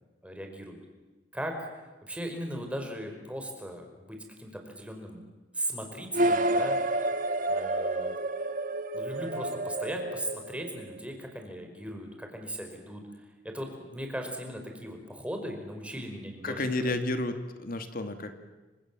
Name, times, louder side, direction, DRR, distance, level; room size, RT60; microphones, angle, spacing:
voice 1, 0.2-0.8 1.3-1.7 2.0-5.2 5.5-6.8 7.5-8.1 8.9-13.0 13.4-16.9, right 1 dB, 5° right, 4 dB, 5.1 m, -38 dB
sound 1, 6.1-11.0, right 1 dB, 45° right, 1.4 m, -29 dB
voice 2, 16.4-18.4, left 2 dB, 50° left, 7 dB, 2.3 m, -31 dB
30.0 x 26.0 x 7.6 m, 1.2 s
head